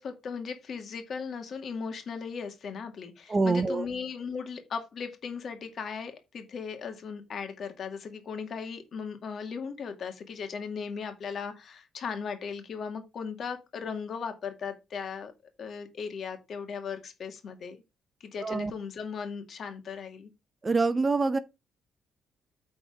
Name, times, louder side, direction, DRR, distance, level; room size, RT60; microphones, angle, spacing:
voice 1, 0.0-15.3 15.6-17.8 18.2-20.3, left 6 dB, 55° left, 2.1 m, -37 dB
voice 2, 3.3-3.9 18.4-18.7 20.6-21.4, right 3 dB, 30° right, 0.7 m, -25 dB
8.7 x 4.3 x 4.9 m
cardioid pair, 90°, 0 cm